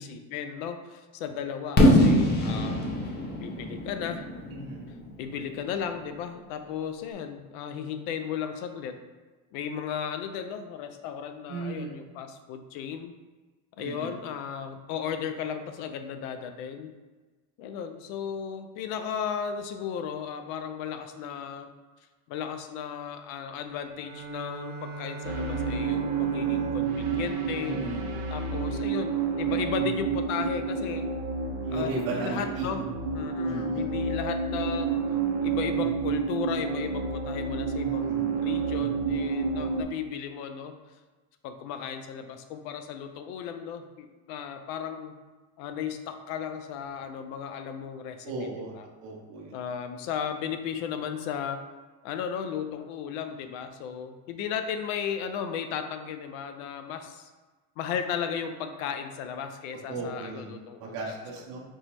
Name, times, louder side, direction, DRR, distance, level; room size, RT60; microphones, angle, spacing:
voice 1, 0.0-2.8 3.4-4.2 5.2-8.9 9.5-13.1 13.8-16.9 17.6-21.7 22.3-27.8 28.3-31.1 31.7-32.8 33.1-35.0 35.4-40.7 41.4-45.1 45.6-48.9 49.5-51.6 52.0-57.3 57.8-61.1, left 7 dB, 70° left, 8 dB, 0.5 m, -35 dB
Fireworks, 1.8-5.6, left 1 dB, 25° left, 0.6 m, -23 dB
voice 2, 4.5-4.9 11.5-11.9 13.8-14.1 27.6-28.0 31.6-32.7 33.4-33.9 37.8-38.2 48.2-48.7 49.0-49.5 59.9-60.5 60.8-61.6, right 3 dB, 60° right, -2 dB, 0.9 m, -35 dB
Bowed string instrument, 23.8-28.8, right 3 dB, 25° right, 0.9 m, -41 dB
sound 1, 25.2-39.8, right 5 dB, 85° right, 0.7 m, -29 dB
4.4 x 2.1 x 3.0 m, 1.3 s
supercardioid pair, 120°, 43 cm